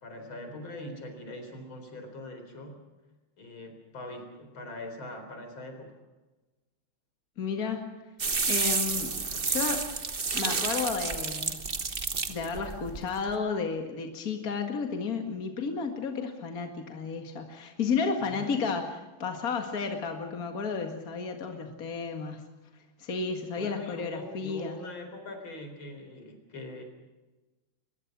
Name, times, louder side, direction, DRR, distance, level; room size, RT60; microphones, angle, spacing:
voice 1, 0.0-2.8 3.4-6.0 18.2-18.6 23.6-26.8, left 1 dB, 85° left, 5 dB, 5.0 m, -42 dB
voice 2, 7.4-7.9 8.5-9.2 9.4-9.8 10.3-11.7 12.3-22.4 23.0-24.8, left 5 dB, 45° left, 4 dB, 2.4 m, -32 dB
sound 1, 8.2-13.4, right 4 dB, 30° right, 1.3 m, -30 dB
23.0 x 21.5 x 6.1 m, 1.1 s
omnidirectional pair, 2.2 m